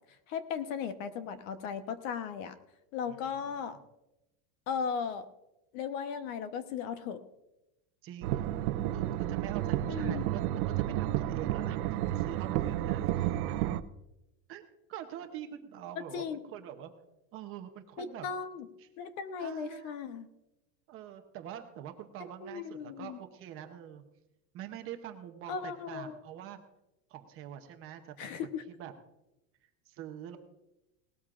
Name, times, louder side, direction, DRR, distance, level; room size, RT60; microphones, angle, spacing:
voice 1, 0.3-2.6 2.9-3.8 4.7-5.3 5.7-7.2 9.9-10.2 16.1-16.4 18.0-18.7 19.0-20.3 22.4-23.2 25.5-26.2 28.2-28.6, left 6 dB, 55° left, 10 dB, 1.1 m, -36 dB
voice 2, 3.1-3.5 8.0-8.5 8.9-13.6 14.5-16.9 17.3-18.3 18.8-18.9 19.4-20.0 20.9-24.0 24.5-26.6 27.1-28.3 28.7-28.9 29.9-30.4, right 10 dB, 30° right, 6 dB, 0.8 m, -45 dB
sound 1, 8.2-13.8, right 13 dB, 70° right, 0.8 m, -31 dB
19.0 x 13.0 x 2.5 m, 0.92 s
supercardioid pair, 175°, 47 cm